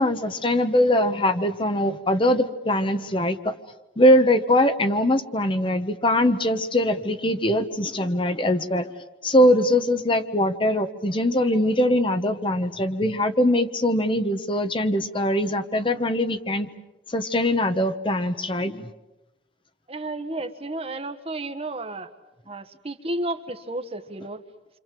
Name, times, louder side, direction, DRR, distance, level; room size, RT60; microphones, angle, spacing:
voice 1, 0.0-3.5 4.0-8.9 9.2-16.7 17.1-18.9, left 1 dB, 30° left, 9 dB, 1.1 m, -22 dB
voice 2, 19.9-22.1 22.5-24.4, right 2 dB, 35° right, 8 dB, 1.4 m, -32 dB
28.0 x 26.0 x 7.6 m, 1.0 s
head